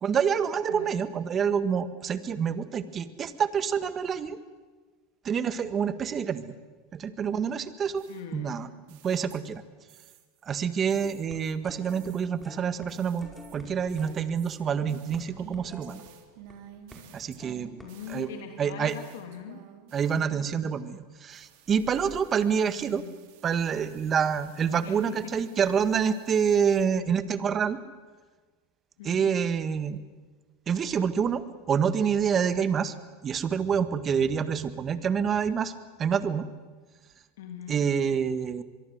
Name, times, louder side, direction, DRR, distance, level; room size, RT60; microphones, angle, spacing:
voice 1, 0.0-4.4 5.2-6.5 6.9-8.0 8.3-9.6 10.4-16.0 17.1-17.7 18.1-18.3 18.6-18.9 19.9-23.0 23.4-27.8 29.0-30.0 30.7-32.9 33.2-35.7 36.0-36.4 37.7-38.6, right 7 dB, 30° right, 12 dB, 1.6 m, -27 dB
sound 1, 8.0-10.5 10.9-21.0 21.3-26.9, right 9 dB, 65° right, 3.4 m, -53 dB
voice 2, 8.1-8.6 17.8-19.6 22.9-23.1 24.8-25.5 29.0-29.3 37.4-37.8, left 7 dB, 80° left, 4 dB, 2.9 m, -41 dB
sound 2, 11.0-12.1 12.4-12.9 13.2-16.5 16.9-17.1 17.4-17.9, equal, ahead, 5.2 m, -49 dB
24.5 x 22.5 x 8.0 m, 1.4 s
supercardioid pair, 120°, 0 cm